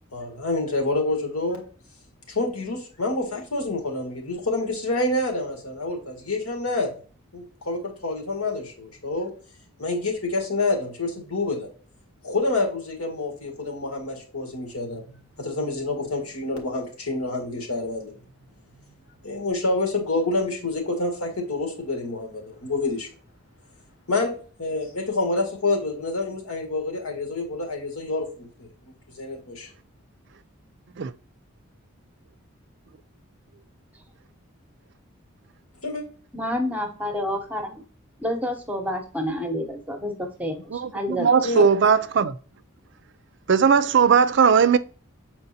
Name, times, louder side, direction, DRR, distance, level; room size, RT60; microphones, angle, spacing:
voice 1, 0.1-1.6 2.3-6.9 7.3-9.3 9.8-11.7 12.2-15.0 15.4-18.1 19.2-23.1 24.1-29.7 35.8-36.0 41.4-41.6, left 2 dB, 85° left, 2.1 m, -27 dB
voice 2, 36.3-37.8 38.2-41.6, left 1 dB, 5° right, 0.8 m, -29 dB
voice 3, 40.7-42.3 43.5-44.8, right 6 dB, 55° right, 0.4 m, -18 dB
7.7 x 4.4 x 2.8 m
head